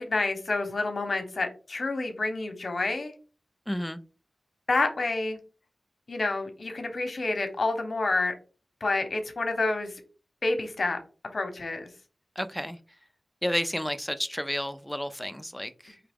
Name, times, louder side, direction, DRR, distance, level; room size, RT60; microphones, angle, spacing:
voice 1, 0.0-3.1 4.7-5.4 6.1-8.3 8.8-9.9 10.4-11.0 11.3-11.9, left 3 dB, 60° left, 6 dB, 0.9 m, -28 dB
voice 2, 3.7-4.0 12.4-12.8 13.4-16.0, equal, 5° left, 10 dB, 0.4 m, -31 dB
4.8 x 2.9 x 3.5 m, 0.37 s
wide cardioid pair, 110°, 0 cm